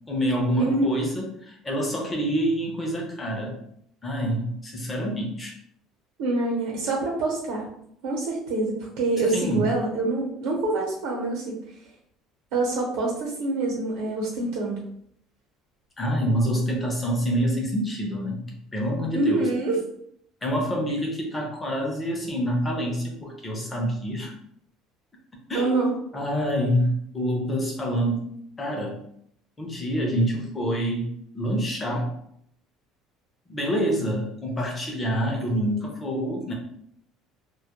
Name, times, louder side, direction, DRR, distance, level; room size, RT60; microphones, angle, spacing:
voice 1, 0.1-3.5 4.0-5.5 9.3-9.7 16.0-19.5 20.4-24.3 25.5-25.7 26.1-28.3 28.6-29.0 29.6-32.1 33.5-36.5, equal, 15° left, 0 dB, 0.5 m, -26 dB
voice 2, 6.2-7.6 8.0-11.5 12.5-14.8 19.1-19.8 25.5-25.9, right 2 dB, 80° right, -2 dB, 0.8 m, -26 dB
2.2 x 2.1 x 2.8 m, 0.70 s
cardioid pair, 170°, 0 cm